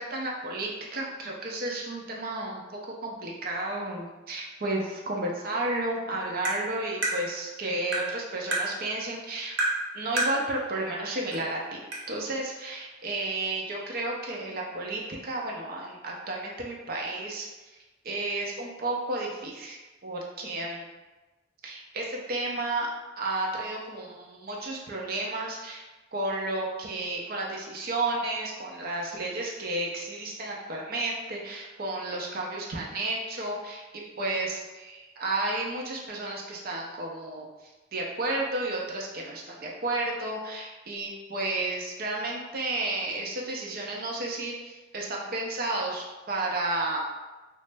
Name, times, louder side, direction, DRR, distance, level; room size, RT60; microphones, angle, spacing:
voice 1, 0.0-9.6 9.9-11.8 12.1-17.8 18.0-20.8 21.6-22.9 23.2-25.8 26.1-33.8 34.2-47.0, right 2 dB, 55° right, -1 dB, 0.5 m, -32 dB
Tap, 6.4-6.6 7.0-7.2 7.9-8.1 8.5-8.7 9.6-9.8 10.2-10.4 11.3-11.4 11.9-12.0, right 2 dB, 85° right, 0.8 m, -27 dB
3.1 x 2.0 x 3.3 m, 1.2 s
head